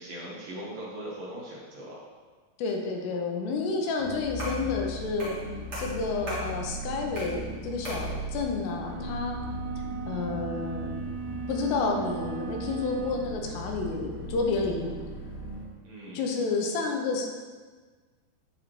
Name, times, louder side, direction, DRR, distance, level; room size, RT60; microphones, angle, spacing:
voice 1, 0.0-2.0 15.8-16.3, right 1 dB, 65° right, -5 dB, 2.8 m, -40 dB
voice 2, 2.6-5.4 5.8-9.4 10.1-10.9 11.5-15.0 16.1-17.3, left 4 dB, 80° left, 1 dB, 2.9 m, -30 dB
sound 1, 4.0-15.7, right 1 dB, 60° left, 2.6 m, -38 dB
sound 2, 4.4-4.7 5.2-5.4 5.7-6.5 7.1-7.4 7.8-8.1, equal, 50° right, 1.3 m, -37 dB
sound 3, 8.6-13.2, right 6 dB, 80° right, 2.1 m, -38 dB
13.5 x 4.6 x 3.2 m, 1.5 s
omnidirectional pair, 5.0 m